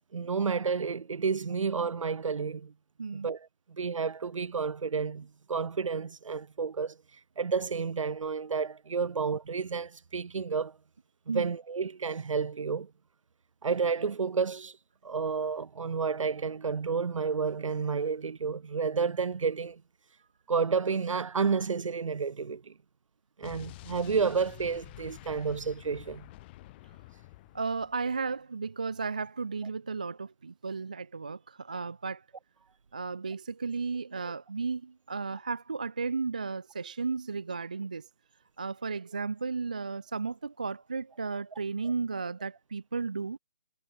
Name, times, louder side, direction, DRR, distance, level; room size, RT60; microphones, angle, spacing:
voice 1, 0.1-2.7 3.2-7.0 7.4-10.8 11.3-12.9 13.6-14.8 15.0-19.8 20.5-22.7 23.4-26.3, right 5 dB, 70° right, 1.3 m, -31 dB
voice 2, 3.0-3.3 11.3-11.5 27.5-32.2 32.9-38.1 38.6-43.4, right 4 dB, 15° right, 0.3 m, -34 dB
Explosion, 23.4-28.2, left 19 dB, 20° left, 2.1 m, -49 dB
hypercardioid pair, 165°, 17 cm